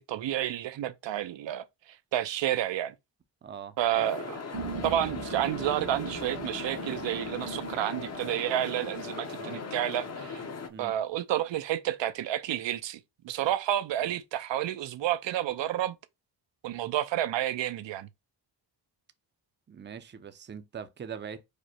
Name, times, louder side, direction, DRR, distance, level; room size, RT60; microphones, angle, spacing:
voice 1, 0.0-2.9 3.8-4.4 4.8-10.4 10.8-13.0 13.2-16.0 16.6-18.1, right 12 dB, 80° right, 0.6 m, -30 dB
voice 2, 3.4-3.8 9.3-9.6 10.7-11.0 14.0-14.2 19.7-21.5, right 7 dB, 25° right, 0.4 m, -42 dB
sound 1, 3.9-10.7, left 4 dB, 35° left, 0.7 m, -39 dB
sound 2, 4.5-10.8, right 5 dB, 60° right, 1.0 m, -41 dB
5.0 x 2.1 x 4.2 m
wide cardioid pair, 145°, 43 cm